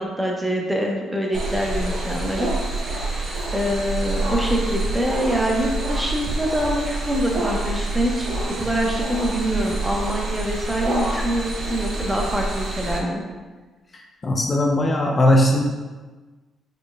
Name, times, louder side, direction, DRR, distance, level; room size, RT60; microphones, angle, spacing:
voice 1, 0.0-2.5 2.9-3.2 3.5-8.3 8.6-13.2, equal, 10° right, -1 dB, 0.9 m, -25 dB
sound 1, 1.3-13.0, right 2 dB, 60° right, 1.1 m, -27 dB
voice 2, 14.2-15.6, left 1 dB, 30° left, 1 dB, 0.5 m, -18 dB
4.8 x 4.7 x 2.2 m, 1.3 s
cardioid pair, 90°, 0 cm